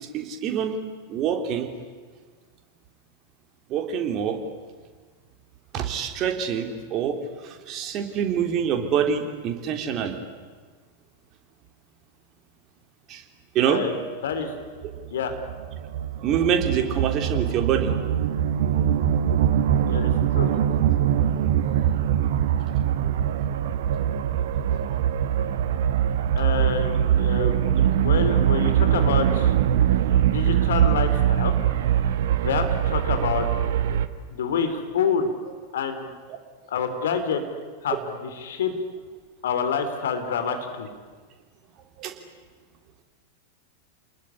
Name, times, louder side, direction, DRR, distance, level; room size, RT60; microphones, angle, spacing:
voice 1, 0.1-0.7 1.1-1.7 3.7-4.4 5.7-7.2 7.4-10.2 13.1-13.2 13.5-13.8 16.2-17.9 21.6-21.7 22.0-22.1 23.0-23.1 24.9-25.0 27.4-27.5 42.0-42.1, right 8 dB, 35° right, 5 dB, 3.4 m, -26 dB
voice 2, 13.6-14.5 15.1-15.3 19.9-20.5 26.4-27.6 28.0-29.5 30.3-31.5 32.4-33.5 34.3-35.3 35.7-36.1 36.7-37.4 37.8-38.7 39.4-40.9, left 6 dB, 60° left, 7 dB, 3.6 m, -27 dB
sound 1, 14.8-34.1, right 10 dB, 55° right, 1.4 m, -22 dB
29.0 x 20.5 x 9.9 m, 1.5 s
figure-of-eight pair, 90°, 0 cm